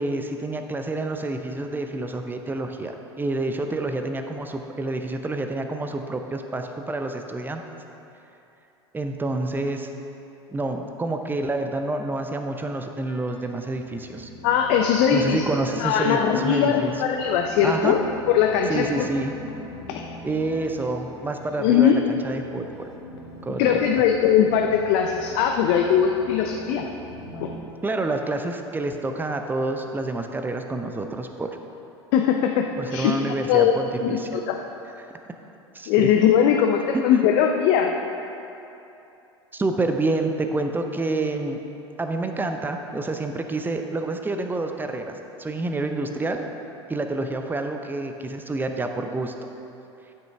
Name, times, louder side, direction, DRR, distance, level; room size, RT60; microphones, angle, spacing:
voice 1, 0.0-7.6 8.9-9.9 10.5-14.3 15.1-16.9 17.6-18.0 18.7-19.3 20.2-22.9 23.4-23.8 27.8-31.6 32.8-34.3 35.0-35.1 35.7-36.1 36.9-37.1 39.5-41.6 42.0-46.4 46.9-49.3, right 2 dB, 15° right, 5 dB, 0.7 m, -28 dB
sound 1, 13.0-27.6, left 2 dB, 70° left, 1.2 m, -42 dB
voice 2, 14.4-15.4 15.8-18.0 18.3-19.1 19.9-20.0 21.6-22.0 23.6-26.9 32.1-34.6 35.9-37.9, left 8 dB, 55° left, 3 dB, 0.6 m, -20 dB
11.5 x 6.3 x 3.5 m, 2.9 s
figure-of-eight pair, 75°, 15 cm